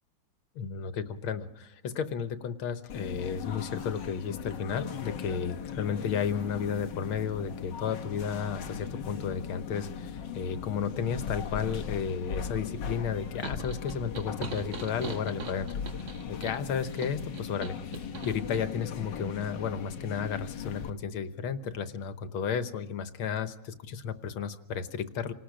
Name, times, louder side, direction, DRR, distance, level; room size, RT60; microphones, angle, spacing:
voice 1, 0.6-15.8 16.3-25.3, left 7 dB, 85° left, 10 dB, 2.0 m, -33 dB
sound 1, 2.9-20.9, left 7 dB, 60° left, 1.8 m, -38 dB
sound 2, 13.4-18.7, right 4 dB, 80° right, 2.8 m, -41 dB
28.0 x 19.0 x 5.0 m, 0.87 s
omnidirectional pair, 2.2 m